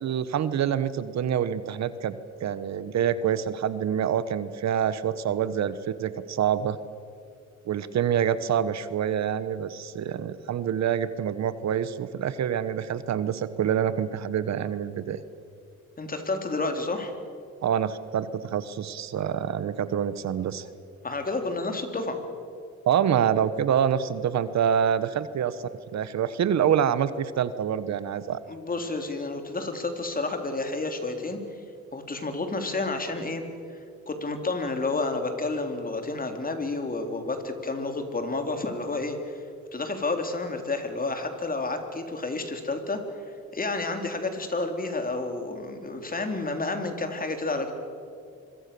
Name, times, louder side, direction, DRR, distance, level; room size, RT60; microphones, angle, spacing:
voice 1, 0.0-6.8 7.7-15.2 17.6-20.7 22.9-25.6 25.9-28.4, right 9 dB, 60° right, 14 dB, 1.1 m, -26 dB
voice 2, 16.0-17.1 21.0-22.2 28.5-31.4 31.9-33.4 34.1-39.4 39.7-43.0 43.5-47.7, left 3 dB, 30° left, 6 dB, 3.6 m, -30 dB
25.5 x 23.0 x 7.0 m, 2.4 s
cardioid pair, 90°, 30 cm